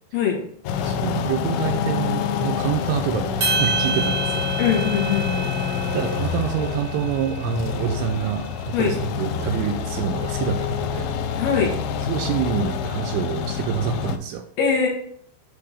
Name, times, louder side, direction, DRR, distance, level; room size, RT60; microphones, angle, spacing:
sound 1, 0.6-14.2, left 7 dB, 85° left, 2.2 m, -27 dB
voice 1, 0.8-4.5 5.7-11.1 12.0-14.4, right 8 dB, 80° right, 5 dB, 2.4 m, -27 dB
sound 2, 3.4-7.8, right 4 dB, 65° right, 1.2 m, -29 dB
voice 2, 4.6-5.5 8.7-8.9 11.4-11.7 14.6-14.9, left 6 dB, 65° left, -1 dB, 2.5 m, -21 dB
7.9 x 3.4 x 4.9 m, 0.63 s
omnidirectional pair, 4.9 m